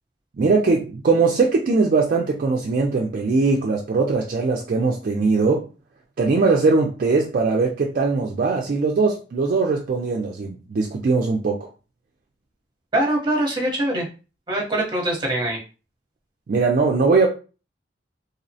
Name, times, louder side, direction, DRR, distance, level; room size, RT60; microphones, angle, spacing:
voice 1, 0.4-5.6 6.2-11.6 16.5-17.3, right 4 dB, 50° right, 0 dB, 0.3 m, -20 dB
voice 2, 12.9-14.1 14.5-15.6, right 1 dB, 25° right, -1 dB, 0.8 m, -23 dB
2.7 x 2.0 x 2.7 m, 0.34 s
head